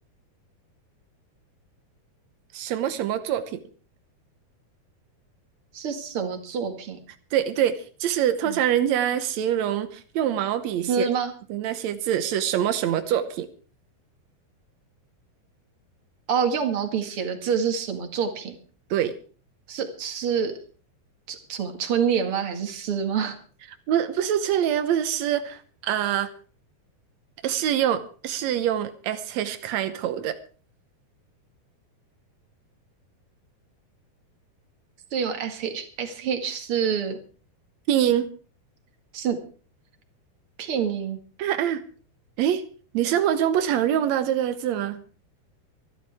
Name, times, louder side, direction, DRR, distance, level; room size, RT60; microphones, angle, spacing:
voice 1, 2.5-3.6 7.3-11.1 11.5-13.5 18.9-19.2 23.9-26.3 27.4-30.4 37.9-38.3 41.4-41.8 42.4-42.6 42.9-45.0, right 10 dB, 90° right, 10 dB, 1.5 m, -25 dB
voice 2, 5.7-7.0 8.5-8.6 10.9-11.3 16.3-18.5 19.7-20.5 21.3-23.4 35.1-37.2 39.1-39.4 40.6-41.2, right 7 dB, 45° right, 6 dB, 2.3 m, -27 dB
25.0 x 12.0 x 3.5 m, 0.40 s
omnidirectional pair, 4.5 m